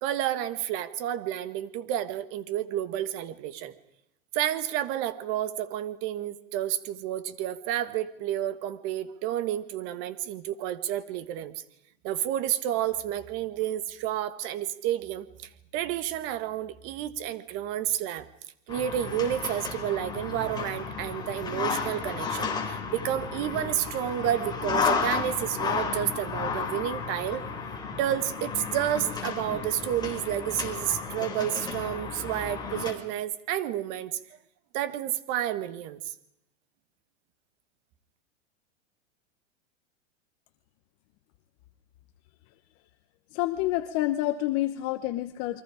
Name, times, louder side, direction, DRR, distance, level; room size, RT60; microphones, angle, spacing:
voice 1, 0.0-3.7 4.3-11.6 12.0-15.3 15.7-18.3 18.7-27.4 28.0-34.2 34.7-36.1, right 11 dB, 40° right, 12 dB, 1.7 m, -30 dB
sound 1, 18.7-32.9, left 5 dB, 10° left, 4.3 m, -33 dB
voice 2, 43.3-45.6, left 15 dB, 35° left, 9 dB, 1.1 m, -28 dB
29.5 x 23.5 x 5.0 m, 0.81 s
supercardioid pair, 145°, 37 cm